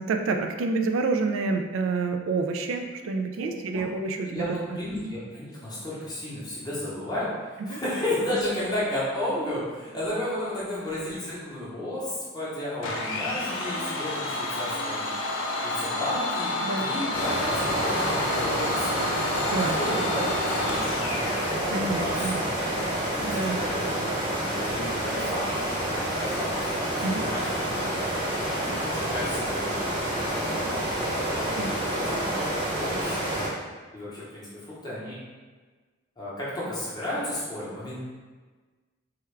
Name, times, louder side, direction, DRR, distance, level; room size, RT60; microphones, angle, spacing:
voice 1, 0.0-4.6 7.6-7.8 16.6-16.8 19.5-19.8 21.7-22.4 23.2-23.6 27.0-27.3 31.6-31.7, right 3 dB, 75° right, 5 dB, 0.3 m, -28 dB
voice 2, 4.2-15.0 15.6-16.5 16.8-19.0 19.7-20.2 20.6-21.2 22.0-22.4 23.1-24.0 24.3-25.5 25.9-26.6 26.8-27.7 28.0-28.3 28.7-29.7 30.1-30.8 31.3-33.3 33.9-35.2 36.2-38.0, left 1 dB, 20° left, -9 dB, 0.8 m, -33 dB
Domestic sounds home sounds, 12.8-21.5, left 2 dB, 70° left, 0.4 m, -30 dB
sound 1, 17.1-33.5, right 1 dB, 25° right, 0.7 m, -28 dB
3.4 x 2.2 x 3.2 m, 1.4 s
head